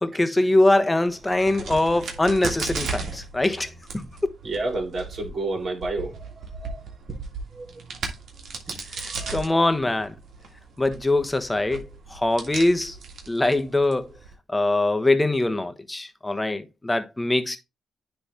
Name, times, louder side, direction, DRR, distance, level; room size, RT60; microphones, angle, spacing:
voice 1, 0.0-4.1 8.9-10.1 10.8-13.0 13.3-14.1 14.5-17.6, left 2 dB, 20° left, 1.1 m, -23 dB
Crack, 1.1-14.3, right 4 dB, 70° right, 1.8 m, -37 dB
voice 2, 4.4-6.2 6.6-6.8 7.1-7.2 7.6-7.7 8.7-8.8 9.0-9.6, right 2 dB, 55° right, 3.5 m, -30 dB
10.0 x 3.4 x 3.4 m
supercardioid pair, 55°, 0 cm